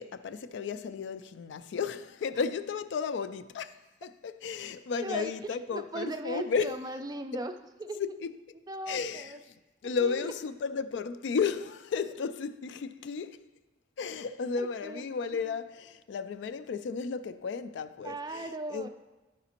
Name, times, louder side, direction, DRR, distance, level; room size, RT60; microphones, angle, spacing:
voice 1, 0.0-6.8 8.0-8.3 8.9-9.4 9.8-13.4 14.0-18.9, left 5 dB, 70° left, 0.3 m, -33 dB
voice 2, 5.0-5.3 5.7-7.5 7.8-8.0 8.7-9.4 10.0-10.3 14.6-15.2 18.0-18.9, right 2 dB, 20° right, 0.3 m, -38 dB
11.0 x 4.9 x 2.9 m
head